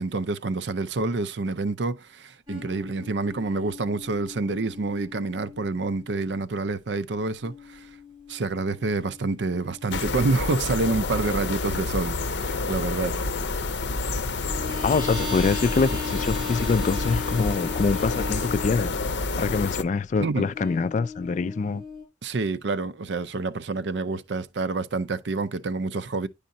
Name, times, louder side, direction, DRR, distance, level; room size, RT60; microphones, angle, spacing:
voice 1, 0.0-7.9 8.3-13.1 20.2-20.5 22.2-26.3, right 3 dB, 70° right, 0.6 m, -28 dB
sound 1, 2.5-6.4 7.4-11.5 14.4-19.3 20.5-22.0, left 4 dB, 25° right, 4.9 m, -38 dB
sound 2, 9.9-19.8, left 3 dB, 65° left, 0.7 m, -29 dB
voice 2, 14.8-19.0 19.4-21.8, left 4 dB, 40° left, 0.3 m, -25 dB
10.0 x 5.0 x 2.7 m
head